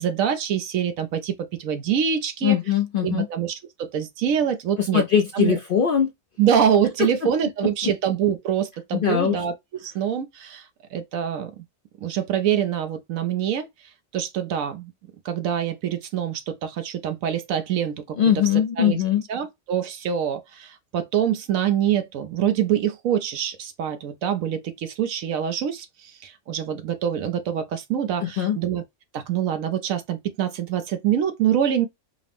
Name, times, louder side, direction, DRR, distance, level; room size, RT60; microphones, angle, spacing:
voice 1, 0.0-2.6 3.0-5.0 5.3-5.6 6.4-9.5 9.8-11.6 12.0-14.9 15.2-18.2 18.8-19.0 19.3-28.8 29.1-31.9, right 9 dB, 75° right, 1.0 m, -25 dB
voice 2, 2.4-3.3 4.8-6.1 7.0-7.3 7.8-7.9 8.9-9.4 18.2-19.2 28.2-28.6, left 9 dB, 70° left, 0.5 m, -21 dB
5.0 x 2.0 x 3.4 m
omnidirectional pair, 1.5 m